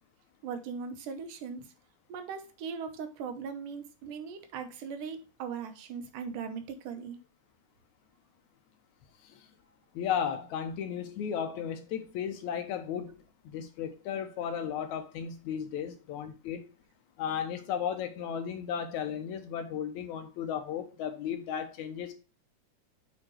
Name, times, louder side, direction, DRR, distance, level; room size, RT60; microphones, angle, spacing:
voice 1, 0.4-1.7 2.1-7.2, right 6 dB, 85° right, 2.5 m, -39 dB
voice 2, 10.0-13.2 13.5-16.7 17.2-22.1, left 8 dB, 75° left, 2.0 m, -35 dB
7.9 x 4.4 x 3.0 m
omnidirectional pair, 3.7 m